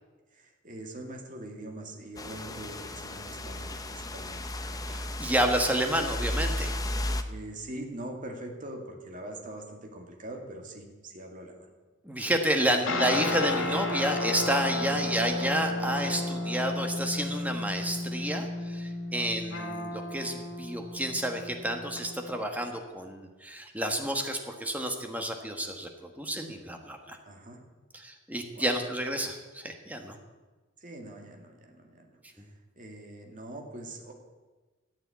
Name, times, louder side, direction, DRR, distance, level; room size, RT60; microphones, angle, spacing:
voice 1, 0.3-4.4 7.3-11.7 14.9-15.0 19.1-19.3 27.3-27.6 28.5-28.7 30.8-32.1 32.4-32.5 32.8-34.1, right 1 dB, 40° right, 2 dB, 2.2 m, -43 dB
sound 1, 2.2-7.2, left 1 dB, 20° left, 0.7 m, -34 dB
voice 2, 4.9-6.8 12.0-25.9 26.2-27.2 27.9-30.1, right 1 dB, 10° right, 4 dB, 1.4 m, -30 dB
sound 2, 12.9-22.6, left 2 dB, 75° left, 2.3 m, -33 dB
14.0 x 8.9 x 8.5 m, 1.3 s
head